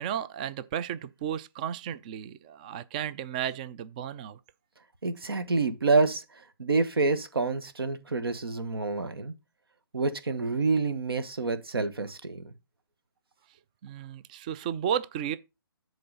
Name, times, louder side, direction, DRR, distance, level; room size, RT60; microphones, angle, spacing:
voice 1, 0.0-4.4 13.8-15.4, right 9 dB, 20° right, 0.3 m, -33 dB
voice 2, 5.0-9.3 9.9-12.5, right 3 dB, 80° right, 1.4 m, -28 dB
7.8 x 4.0 x 5.5 m
hypercardioid pair, 150°, 12 cm